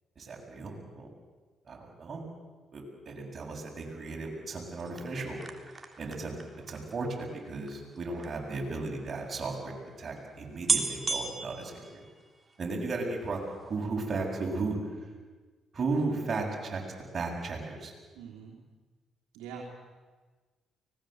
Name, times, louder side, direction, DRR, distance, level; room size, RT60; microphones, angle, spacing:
voice 1, 0.2-1.1 1.7-2.3 2.7-5.4 6.0-6.3 6.7-12.1 12.6-13.4 13.6-14.8 15.7-16.8 17.1-17.9, right 3 dB, 45° right, -1 dB, 7.6 m, -35 dB
sound 1, 4.7-8.3 9.2-9.3 9.4-9.6 10.2-10.3 10.6-12.6 13.0-13.4 13.6-13.7, right 4 dB, 30° right, 3.5 m, -34 dB
voice 2, 18.1-18.5 19.3-19.6, right 8 dB, 90° right, -2 dB, 3.4 m, -43 dB
24.5 x 20.0 x 8.0 m, 1.4 s
supercardioid pair, 65°, 0 cm